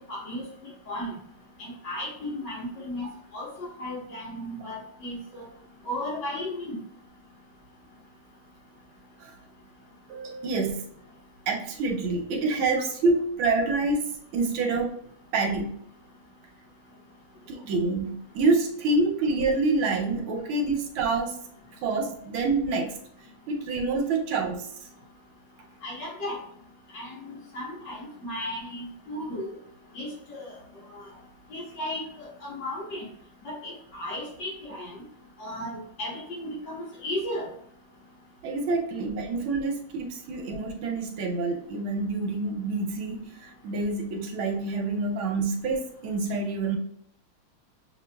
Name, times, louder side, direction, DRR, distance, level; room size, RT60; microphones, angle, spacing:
voice 1, 0.1-0.5 0.9-1.1 1.6-3.1 3.3-5.4 5.8-6.7 25.8-26.4 26.9-29.5 29.9-30.5 30.9-31.0 31.5-33.1 33.4-35.0 35.4-37.5, left 1 dB, 60° left, -4 dB, 1.9 m, -35 dB
voice 2, 10.1-10.8 11.5-15.0 15.3-15.8 17.5-21.4 21.7-23.0 23.5-24.7 38.4-46.8, right 3 dB, 85° right, 2 dB, 1.5 m, -27 dB
6.5 x 3.0 x 2.2 m, 0.65 s
omnidirectional pair, 2.3 m